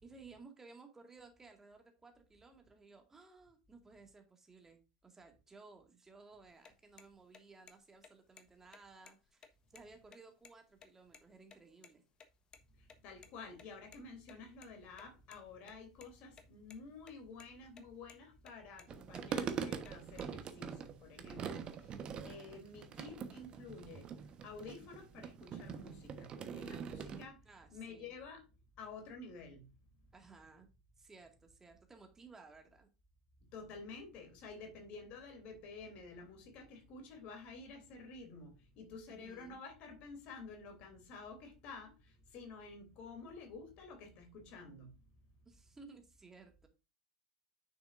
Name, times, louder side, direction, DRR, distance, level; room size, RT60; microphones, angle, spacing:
voice 1, 0.0-9.5 9.7-12.0 27.5-28.1 30.1-30.7 31.0-32.9 39.1-39.6 45.5-46.7, right 4 dB, 15° right, 2.0 m, -58 dB
sound 1, 6.5-11.6 11.8-11.9 12.2-12.3 12.5-12.6 12.9-13.0 13.2-13.3 13.6-14.7 14.9-15.4 15.7-16.4 16.7-17.1 17.4-17.8 18.1-18.2 18.5-18.9 19.2-20.3, left 6 dB, 30° left, 1.3 m, -58 dB
voice 2, 12.7-27.5 27.7-28.5 28.8-29.7 33.4-45.1, left 4 dB, 45° left, 3.1 m, -51 dB
sound 2, 18.9-27.3, right 7 dB, 35° right, 1.2 m, -43 dB
9.4 x 6.9 x 2.6 m
figure-of-eight pair, 80°, 3 cm